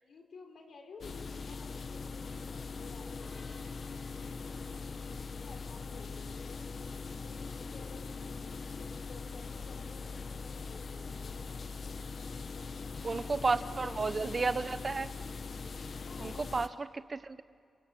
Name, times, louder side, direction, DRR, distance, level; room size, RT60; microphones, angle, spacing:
voice 1, 0.0-6.6 7.2-8.4 8.8-11.7 12.3-13.0 13.3-14.6 15.9-16.6, left 4 dB, 70° left, 4 dB, 4.5 m, -55 dB
sound 1, 1.0-16.7, left 4 dB, 50° left, 0.9 m, -41 dB
sound 2, 3.2-6.7, left 1 dB, 25° left, 5.2 m, -61 dB
voice 2, 13.0-15.1 16.2-17.4, right 4 dB, 35° right, 12 dB, 1.0 m, -32 dB
29.5 x 24.5 x 7.6 m, 2.2 s
wide cardioid pair, 115°, 0 cm